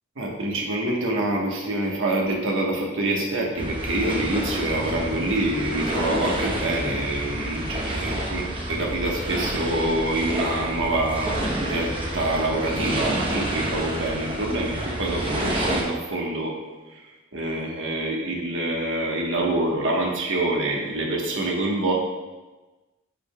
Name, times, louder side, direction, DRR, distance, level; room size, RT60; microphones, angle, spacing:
voice 1, 0.2-16.5 16.9-17.0 17.3-21.9, right 1 dB, 65° right, -1 dB, 1.3 m, -26 dB
sound 1, 3.6-15.8, right 1 dB, 25° right, 1.0 m, -29 dB
9.7 x 5.1 x 2.3 m, 1.2 s
head